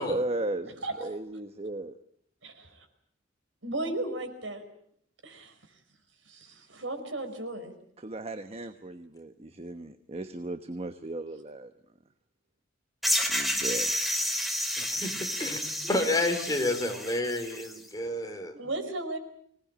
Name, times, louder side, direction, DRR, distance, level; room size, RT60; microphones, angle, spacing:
voice 1, 0.0-2.0 8.0-11.7 13.3-13.9, right 2 dB, 30° right, 9 dB, 1.1 m, -36 dB
voice 2, 2.4-2.8 3.6-4.6 5.2-5.5 6.3-7.7 15.8-15.9 18.5-19.2, right 2 dB, 75° right, 7 dB, 5.0 m, -35 dB
sound 1, 13.0-17.8, equal, ahead, 3.4 m, -30 dB
voice 3, 14.8-15.1 15.4-18.6, left 1 dB, 20° left, 4 dB, 4.0 m, -30 dB
25.0 x 19.0 x 8.9 m, 0.68 s
head